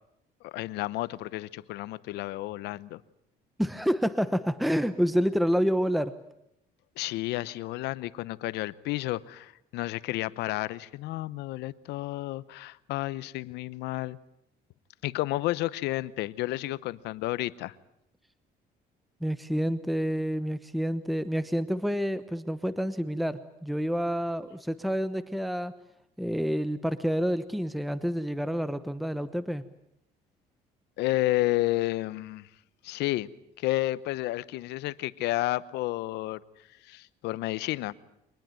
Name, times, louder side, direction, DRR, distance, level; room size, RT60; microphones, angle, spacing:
voice 1, 0.4-3.0 7.0-14.2 15.0-17.7 31.0-32.5 32.8-33.3 33.6-36.4 36.8-37.9, left 17 dB, 85° left, 18 dB, 0.9 m, -31 dB
voice 2, 3.6-6.1 19.2-25.7 26.2-29.6, equal, ahead, 13 dB, 1.0 m, -28 dB
24.5 x 20.0 x 9.0 m, 0.80 s
cardioid pair, 110°, 17 cm